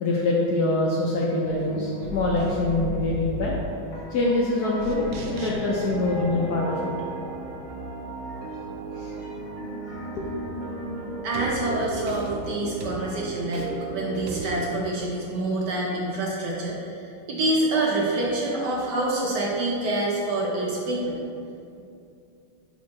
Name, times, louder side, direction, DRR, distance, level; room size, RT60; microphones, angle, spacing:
voice 1, 0.0-3.5 4.1-6.9 8.3-8.4 8.9-9.5 9.8-10.3, left 2 dB, 70° left, -4 dB, 1.0 m, -25 dB
sound 1, 1.4-7.8 9.2-12.9, equal, 50° left, 1.5 m, -38 dB
sound 2, 4.8-14.7, right 3 dB, 80° right, 0.7 m, -35 dB
voice 2, 11.2-16.9 17.3-21.2, right 2 dB, 65° right, -4 dB, 1.2 m, -26 dB
6.3 x 3.8 x 4.2 m, 2.6 s
omnidirectional pair, 2.3 m